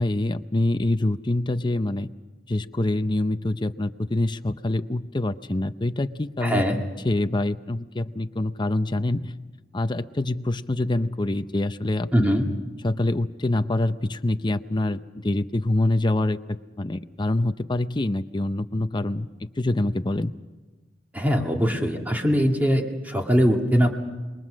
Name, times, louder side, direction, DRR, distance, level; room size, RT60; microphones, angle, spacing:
voice 1, 0.0-2.1 2.5-9.3 9.7-12.4 12.8-20.3, left 1 dB, 25° left, 10 dB, 0.7 m, -25 dB
voice 2, 6.4-6.8 12.1-12.5 21.1-23.9, equal, 10° right, 2 dB, 2.2 m, -21 dB
27.5 x 22.5 x 6.3 m, 1.2 s
head